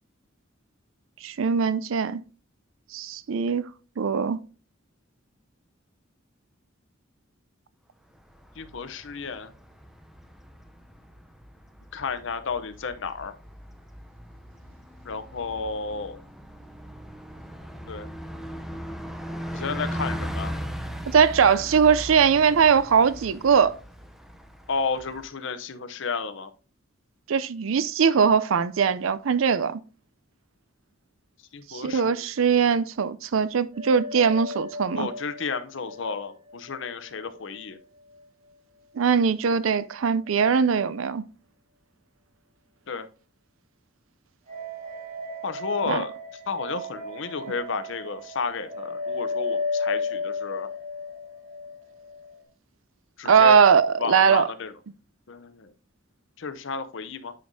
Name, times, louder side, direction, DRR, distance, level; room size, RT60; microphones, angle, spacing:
voice 1, 1.2-2.2 2.9-3.7 4.0-4.4 21.1-23.7 27.3-29.8 31.7-35.1 38.9-41.2 45.9-46.0 53.2-54.5, right 6 dB, 85° right, 0.5 m, -21 dB
Bus, 8.2-25.3, equal, ahead, 0.6 m, -38 dB
voice 2, 8.6-9.5 11.9-13.3 15.0-16.2 17.9-18.1 19.5-20.5 24.7-26.5 31.5-32.2 35.0-37.8 42.9-43.1 45.4-46.1 46.5-50.7 53.2-53.6 54.0-54.7 55.3-55.7 56.4-57.3, left 4 dB, 65° left, 0.7 m, -32 dB
Hymn Of Heaven, 33.7-36.9 37.2-37.3 44.5-52.4, left 3 dB, 40° right, 3.2 m, -34 dB
9.2 x 5.2 x 2.7 m
head